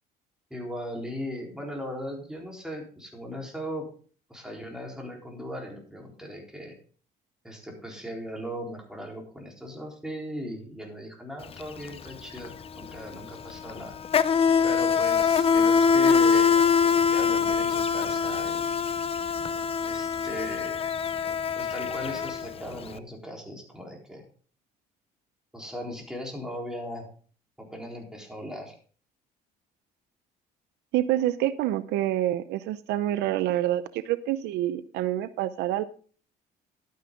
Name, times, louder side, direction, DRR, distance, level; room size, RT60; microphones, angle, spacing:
voice 1, 0.5-3.9 4.3-6.8 7.4-14.0 14.6-18.8 19.8-20.9 21.6-24.2 25.5-27.1 27.6-28.7, equal, 5° right, 0 dB, 4.0 m, -38 dB
Insect, 11.4-11.6 11.9-22.9, left 6 dB, 35° left, 0.7 m, -24 dB
voice 2, 30.9-35.8, right 13 dB, 85° right, 13 dB, 0.6 m, -27 dB
12.0 x 9.4 x 3.8 m, 0.42 s
cardioid pair, 110°, 17 cm